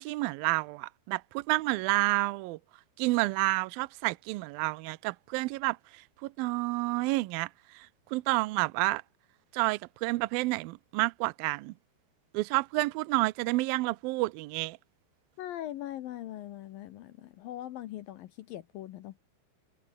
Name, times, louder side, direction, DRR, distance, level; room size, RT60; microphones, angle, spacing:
voice 1, 0.0-2.6 3.0-7.5 7.7-9.0 9.5-11.7 12.3-14.8, right 22 dB, 85° right, 2.1 m, -30 dB
voice 2, 15.4-19.2, left 13 dB, 70° left, 2.4 m, -41 dB
omnidirectional pair, 4.9 m